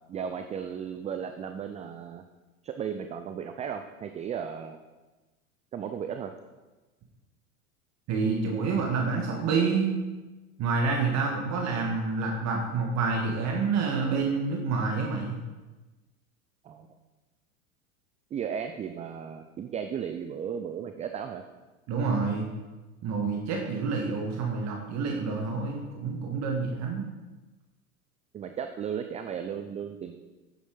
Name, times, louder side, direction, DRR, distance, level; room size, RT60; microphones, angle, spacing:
voice 1, 0.1-2.2 2.6-4.8 5.7-6.3 16.6-16.9 18.3-21.4 28.3-30.2, right 7 dB, 15° right, 7 dB, 0.5 m, -35 dB
voice 2, 8.1-9.9 10.6-15.4 21.9-22.5 23.0-27.0, right 4 dB, 40° right, 1 dB, 1.9 m, -28 dB
9.9 x 8.0 x 5.2 m, 1.2 s
figure-of-eight pair, 85°, 43 cm